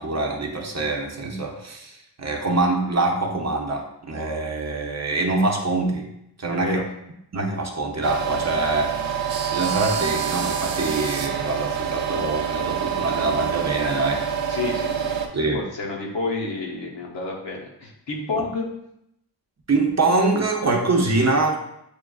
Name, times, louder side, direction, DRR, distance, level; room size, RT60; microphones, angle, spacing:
voice 1, 0.0-6.1 6.4-6.8 7.3-9.2 9.5-14.3 15.3-15.7 18.4-18.5 19.7-21.6, right 2 dB, 40° right, 2 dB, 0.7 m, -24 dB
voice 2, 6.5-6.8 14.5-15.2 15.5-18.7, left 3 dB, 80° left, -2 dB, 1.0 m, -29 dB
sound 1, 8.0-15.3, right 7 dB, 90° right, 0.6 m, -26 dB
6.4 x 2.4 x 2.3 m, 0.79 s
wide cardioid pair, 65°, 43 cm